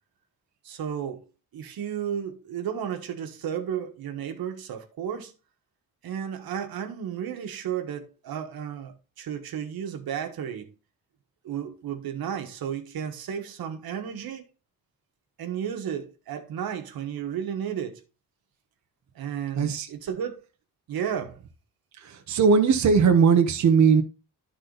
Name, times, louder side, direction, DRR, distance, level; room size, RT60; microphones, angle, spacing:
voice 1, 0.6-1.2 1.5-5.3 6.0-10.7 11.4-14.5 15.4-18.0 19.1-20.4 20.9-21.4, right 8 dB, 85° right, 1.4 m, -33 dB
voice 2, 19.6-19.9 22.0-24.0, right 5 dB, 55° right, 1.0 m, -19 dB
12.0 x 4.1 x 3.9 m
wide cardioid pair, 175°, 35 cm